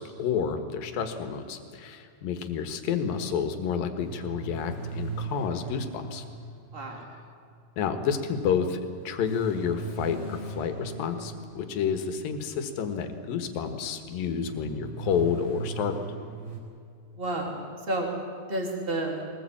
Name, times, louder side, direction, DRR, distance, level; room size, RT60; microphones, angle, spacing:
voice 1, 0.0-6.2 7.8-8.8 9.0-16.0, left 7 dB, 90° left, 8 dB, 3.3 m, -30 dB
sound 1, 4.0-7.5 9.2-12.3 14.4-16.6, right 4 dB, 35° right, 4.8 m, -39 dB
voice 2, 6.7-7.0 17.1-18.1 18.5-19.2, right 2 dB, 15° right, 1 dB, 3.1 m, -31 dB
23.0 x 19.0 x 8.6 m, 2.4 s
omnidirectional pair, 4.0 m